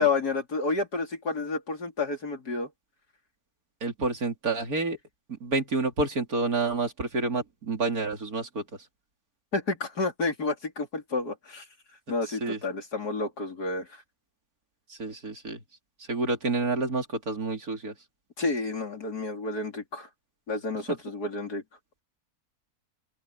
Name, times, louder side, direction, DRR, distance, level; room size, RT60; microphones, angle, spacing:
voice 1, 0.0-2.7 9.5-11.7 12.1-13.9 18.4-20.1 20.5-21.6, left 3 dB, 80° left, 4.2 m, -30 dB
voice 2, 3.8-5.0 5.4-8.6 12.4-12.6 14.9-15.6 16.1-17.9, right 3 dB, 65° right, 3.6 m, -29 dB
open air
omnidirectional pair, 1.7 m